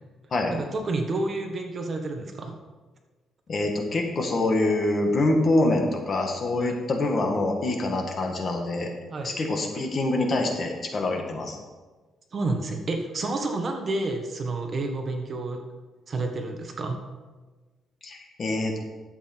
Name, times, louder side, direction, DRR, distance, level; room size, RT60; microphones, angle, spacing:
voice 1, 0.5-2.6 6.6-6.7 9.1-9.4 12.3-15.6 16.1-17.0, right 2 dB, 35° right, 4 dB, 1.4 m, -30 dB
voice 2, 3.5-8.9 9.2-11.6 18.0-18.7, left 2 dB, 40° left, 3 dB, 1.6 m, -25 dB
11.5 x 7.9 x 4.5 m, 1.3 s
cardioid pair, 135°, 0 cm